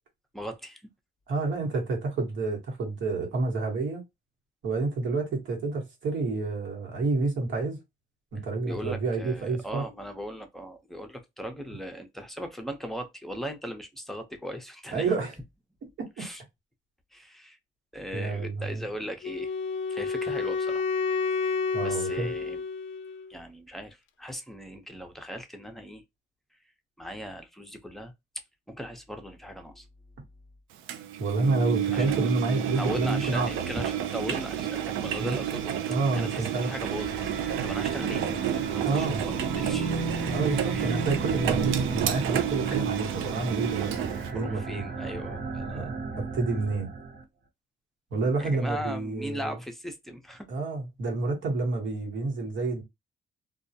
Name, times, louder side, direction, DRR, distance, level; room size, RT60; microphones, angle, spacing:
voice 1, 0.3-0.8 8.6-15.1 16.2-16.4 17.1-17.6 17.9-19.5 19.9-20.8 21.8-22.6 23.3-26.0 27.0-28.1 28.7-29.9 31.9-32.1 32.8-35.8 36.2-37.2 37.6-40.0 40.8-41.0 44.3-45.9 48.4-50.5, equal, ahead, 0.6 m, -38 dB
voice 2, 1.3-4.0 4.6-7.8 8.3-9.8 14.9-15.3 16.0-16.3 18.1-18.9 21.7-22.3 31.2-33.7 35.2-35.4 35.9-36.7 38.8-39.2 40.3-44.8 45.7-46.9 48.1-49.6 50.5-52.8, right 3 dB, 70° right, 1.2 m, -29 dB
Wind instrument woodwind instrument, 19.2-23.3, left 4 dB, 75° left, 0.4 m, -30 dB
Engine, 30.9-44.3, right 10 dB, 90° right, 0.4 m, -30 dB
sound 1, 36.6-47.2, right 3 dB, 55° right, 0.9 m, -34 dB
2.3 x 2.1 x 2.6 m
cardioid pair, 90°, 20 cm